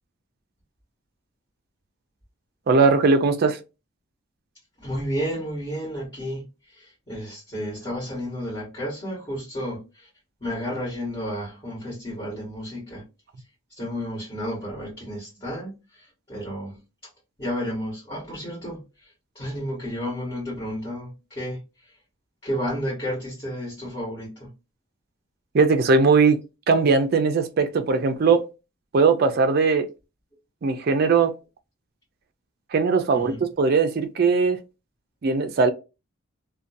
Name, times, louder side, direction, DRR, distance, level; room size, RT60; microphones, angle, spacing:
voice 1, 2.7-3.6 25.5-26.4 26.7-28.5 28.9-29.9 30.6-31.3 32.7-34.6 35.2-35.7, right 4 dB, 45° right, 0.4 m, -19 dB
voice 2, 4.8-10.1 10.4-13.0 13.8-16.8 17.4-19.1 19.3-21.6 22.4-24.5 33.1-33.4, equal, 25° left, 1.4 m, -32 dB
2.6 x 2.2 x 2.5 m
head